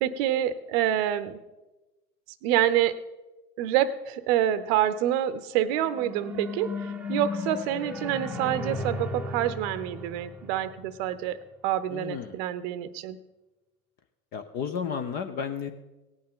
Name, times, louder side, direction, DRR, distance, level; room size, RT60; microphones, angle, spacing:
voice 1, 0.0-1.4 2.4-3.0 3.6-6.7 7.1-11.4 11.6-13.2, right 11 dB, 45° right, 15 dB, 0.7 m, -27 dB
sound 1, 5.6-11.1, left 3 dB, 5° right, 0.8 m, -35 dB
voice 2, 11.9-12.4 14.3-15.7, left 7 dB, 25° left, 9 dB, 0.4 m, -32 dB
17.5 x 8.6 x 3.8 m, 1.1 s
hypercardioid pair, 100°, 45 cm